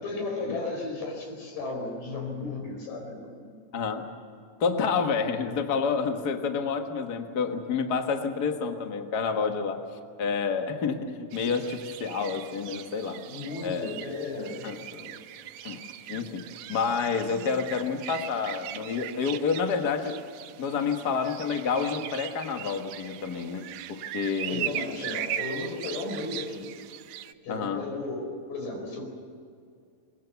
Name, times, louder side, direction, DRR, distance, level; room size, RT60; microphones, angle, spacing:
voice 1, 0.0-3.5 13.3-15.1 20.7-20.9 24.5-26.7 27.4-29.0, left 3 dB, 75° left, 3 dB, 6.3 m, -35 dB
voice 2, 3.7-4.0 4.6-9.8 10.2-13.2 13.6-13.9 14.6-14.8 15.6-15.8 16.1-16.4 16.7-20.1 20.6-24.7 27.5-27.8, left 5 dB, 45° left, 5 dB, 1.3 m, -29 dB
sound 1, 11.3-27.3, right 12 dB, 80° right, 2.3 m, -39 dB
23.0 x 22.0 x 7.1 m, 2.3 s
omnidirectional pair, 3.9 m